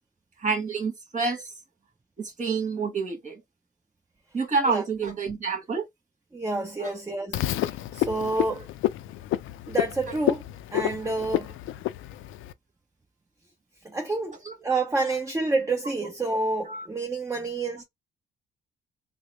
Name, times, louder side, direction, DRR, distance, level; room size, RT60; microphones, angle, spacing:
voice 1, 0.4-1.4 2.2-3.4 4.3-5.8 6.8-6.9 14.4-14.5 16.7-16.9, right 4 dB, 40° right, 1.6 m, -28 dB
voice 2, 6.3-8.7 9.7-10.4 10.7-11.5 13.8-14.4 14.6-17.8, right 3 dB, 15° right, 0.9 m, -28 dB
Frog, 7.3-12.5, left 14 dB, 80° left, 0.4 m, -29 dB
3.5 x 2.0 x 3.3 m
cardioid pair, 90°, 20 cm